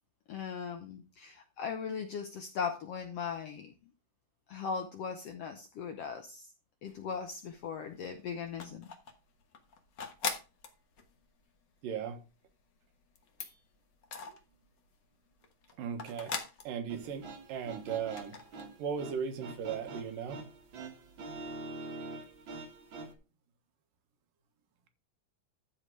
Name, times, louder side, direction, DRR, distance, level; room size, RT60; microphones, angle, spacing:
voice 1, 0.3-3.7 4.5-6.5 6.8-8.9, left 6 dB, 75° left, 1.5 m, -38 dB
sound 1, 6.9-7.6 7.9-14.9 15.3-17.6 18.0-18.6, left 5 dB, 55° left, 1.2 m, -42 dB
voice 2, 11.8-12.2 15.8-16.3 16.6-18.4 18.8-20.4, right 7 dB, 85° right, 2.9 m, -37 dB
sound 2, 16.9-23.1, right 2 dB, 45° right, 1.8 m, -45 dB
13.0 x 4.8 x 4.7 m
omnidirectional pair, 3.9 m